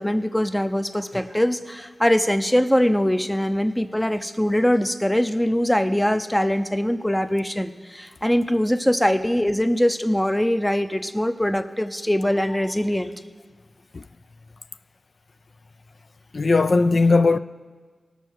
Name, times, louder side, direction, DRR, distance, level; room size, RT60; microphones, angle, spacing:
voice 1, 0.0-13.1, equal, 5° left, 0.6 m, -22 dB
voice 2, 16.3-17.4, left 3 dB, 55° left, 0.3 m, -18 dB
19.0 x 6.5 x 4.7 m
wide cardioid pair, 75°, 0 cm